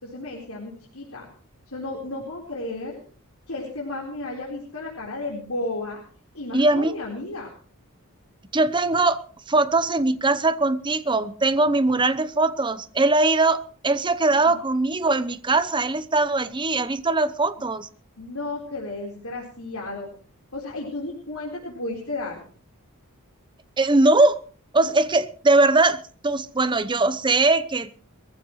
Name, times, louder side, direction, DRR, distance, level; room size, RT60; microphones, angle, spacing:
voice 1, 0.0-1.3 1.7-3.0 3.5-6.0 6.3-7.5 14.5-14.6 18.2-20.1 20.5-22.4, left 2 dB, 70° left, 4.2 m, -33 dB
voice 2, 6.5-6.9 8.5-17.9 23.8-24.4 24.7-27.9, right 2 dB, 20° right, 0.8 m, -21 dB
22.5 x 15.0 x 3.2 m
head